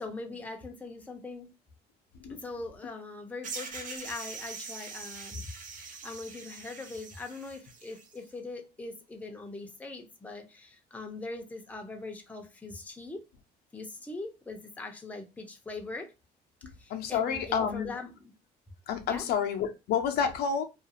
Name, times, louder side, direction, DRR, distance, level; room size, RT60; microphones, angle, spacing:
voice 1, 0.0-1.5 2.3-13.2 13.7-16.1 16.8-18.3 19.1-19.2, left 3 dB, 10° left, 0.5 m, -41 dB
sound 1, 3.4-8.2, right 4 dB, 50° right, 0.7 m, -43 dB
voice 2, 16.9-17.9 18.9-20.6, left 7 dB, 70° left, 0.5 m, -29 dB
2.4 x 2.3 x 2.8 m
cardioid pair, 110°, 17 cm